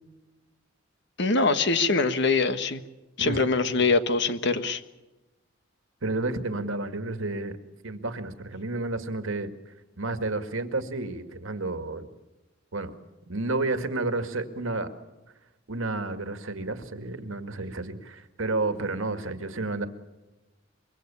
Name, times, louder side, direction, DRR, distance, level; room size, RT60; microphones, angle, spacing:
voice 1, 1.2-2.8 3.2-4.8, left 3 dB, 60° left, 10 dB, 1.5 m, -23 dB
voice 2, 3.2-3.9 6.0-7.6 7.8-12.1 12.7-12.9 13.3-14.9 15.7-19.9, right 2 dB, 80° right, 8 dB, 2.0 m, -31 dB
25.0 x 23.5 x 7.0 m, 1.1 s
head